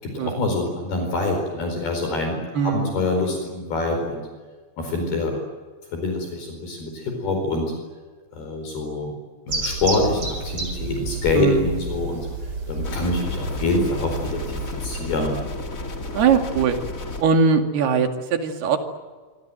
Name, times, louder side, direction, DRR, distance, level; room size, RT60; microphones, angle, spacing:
voice 1, 0.0-4.2 4.8-5.4 5.9-7.7 8.3-9.1 9.5-12.3 12.7-15.3, left 2 dB, 60° left, 3 dB, 6.4 m, -25 dB
voice 2, 2.5-3.0 11.3-11.8 16.1-16.8 17.2-18.8, right 6 dB, 65° right, 5 dB, 4.2 m, -20 dB
sound 1, 9.5-15.8, right 3 dB, 30° right, 5.0 m, -31 dB
sound 2, 12.8-17.2, left 2 dB, 30° left, 1.8 m, -32 dB
27.0 x 25.5 x 7.9 m, 1.4 s
omnidirectional pair, 5.0 m